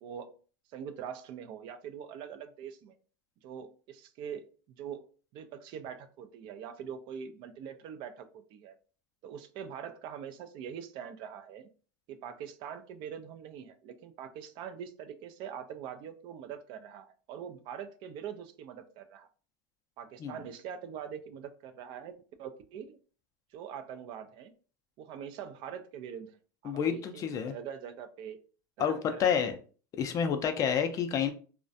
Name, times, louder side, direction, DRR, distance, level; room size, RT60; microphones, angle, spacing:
voice 1, 0.0-0.4 0.7-2.9 3.4-5.1 5.3-8.8 9.2-11.7 12.1-19.3 20.0-23.0 23.5-24.5 25.0-26.4 26.6-28.4 28.8-29.5 30.8-30.9, right 8 dB, 45° right, 0.4 m, -43 dB
voice 2, 26.6-27.5 28.8-29.5 30.0-31.3, left 7 dB, 30° left, 0.4 m, -29 dB
2.3 x 2.1 x 2.6 m
supercardioid pair, 115°, 11 cm